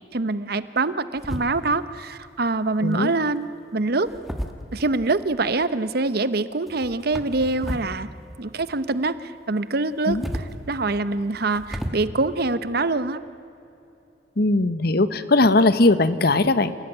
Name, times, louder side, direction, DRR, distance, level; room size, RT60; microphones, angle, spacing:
voice 1, 0.0-4.1 4.7-8.1 8.4-13.2, right 3 dB, 60° right, 13 dB, 0.9 m, -25 dB
sound 1, 1.2-1.9 2.9-3.3 4.0-5.1 6.7-8.0 8.2-9.1 9.9-11.9, equal, ahead, 1.6 m, -34 dB
voice 2, 2.8-3.1 10.1-10.3 14.4-16.8, left 2 dB, 60° left, 13 dB, 1.1 m, -19 dB
28.0 x 17.0 x 9.2 m, 2.8 s
head